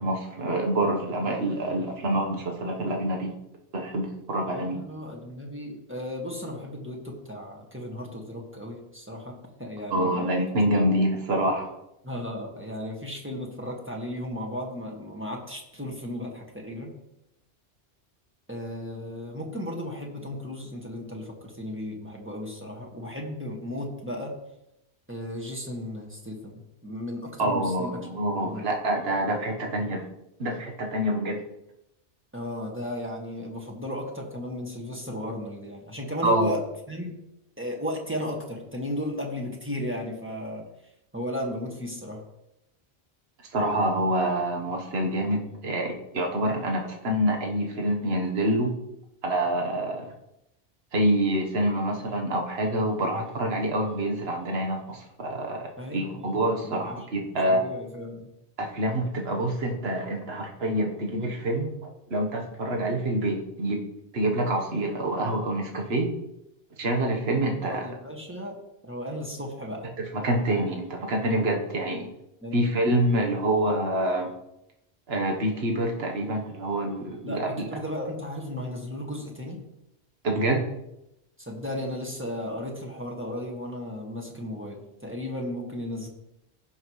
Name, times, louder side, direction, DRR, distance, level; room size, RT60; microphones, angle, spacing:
voice 1, 0.0-3.3 3.7-4.8 9.9-11.7 27.4-30.1 30.4-31.4 36.2-36.5 43.5-48.7 49.2-50.1 50.9-57.6 58.6-61.7 62.1-63.8 64.1-66.1 66.8-67.9 70.1-72.1 72.5-74.3 75.1-77.6 80.2-80.6, right 1 dB, 65° right, 1 dB, 1.5 m, -26 dB
voice 2, 4.5-10.3 10.6-10.9 12.0-17.0 18.5-24.4 25.1-28.1 28.4-28.7 32.3-37.1 37.6-40.7 41.1-42.2 55.8-56.4 56.6-57.0 57.5-58.3 67.6-69.9 72.4-72.6 77.2-79.6 81.4-86.1, left 1 dB, 10° right, -1 dB, 1.7 m, -35 dB
16.0 x 5.9 x 3.2 m, 0.85 s
omnidirectional pair, 1.1 m